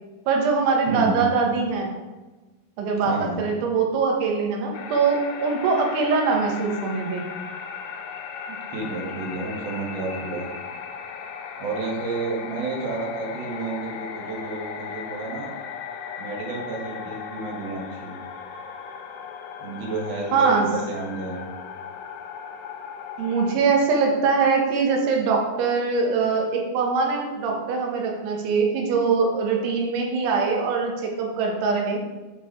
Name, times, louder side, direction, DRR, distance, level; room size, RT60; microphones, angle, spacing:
voice 1, 0.3-1.9 2.8-7.3 8.5-8.6 20.3-20.7 23.2-32.0, right 4 dB, 85° right, 0 dB, 3.8 m, -22 dB
voice 2, 0.9-1.2 3.0-3.4 8.7-10.5 11.6-15.5 16.2-18.1 19.6-21.4, right 3 dB, 65° right, -3 dB, 1.2 m, -30 dB
sound 1, 4.7-23.6, left 7 dB, 80° left, 2.3 m, -37 dB
9.3 x 5.6 x 4.7 m, 1.2 s
omnidirectional pair, 5.2 m